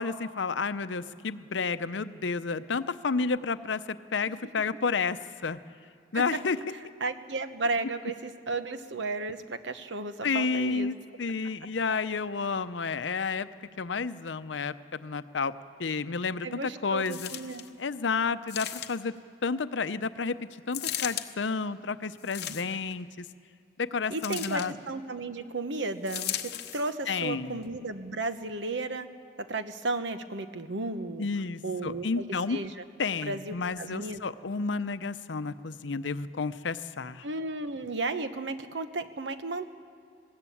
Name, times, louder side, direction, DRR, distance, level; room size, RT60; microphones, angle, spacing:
voice 1, 0.0-5.6 6.1-6.6 10.2-13.5 13.8-15.5 15.8-17.3 17.8-19.1 19.4-20.4 20.7-23.3 23.8-24.7 27.1-27.6 31.2-32.6 33.0-37.2, left 4 dB, 90° left, 13 dB, 0.7 m, -31 dB
voice 2, 7.0-10.9 16.4-17.7 22.5-22.6 24.1-26.4 26.7-29.1 29.5-31.3 31.6-32.2 32.5-32.8 33.3-34.2 37.2-39.7, right 3 dB, 80° right, 10 dB, 1.1 m, -34 dB
sound 1, 17.1-17.7 18.5-19.2 20.7-21.3 22.2-22.9 24.2-24.7 26.1-26.9 27.6-27.7, left 11 dB, 60° left, 0.9 m, -36 dB
20.5 x 16.5 x 8.6 m, 2.4 s
head